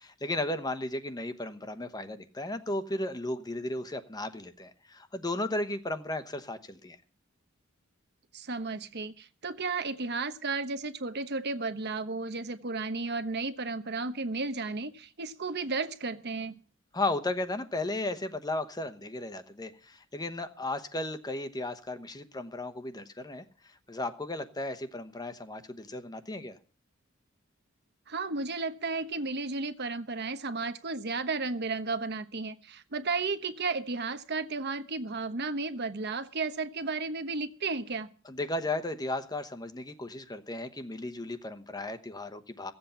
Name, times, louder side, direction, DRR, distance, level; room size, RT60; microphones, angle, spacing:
voice 1, 0.0-7.0 16.9-26.6 38.2-42.7, left 2 dB, 20° left, 9 dB, 1.0 m, -35 dB
voice 2, 8.3-16.5 28.1-38.1, right 3 dB, 55° right, 10 dB, 1.1 m, -33 dB
16.5 x 8.0 x 7.0 m, 0.40 s
head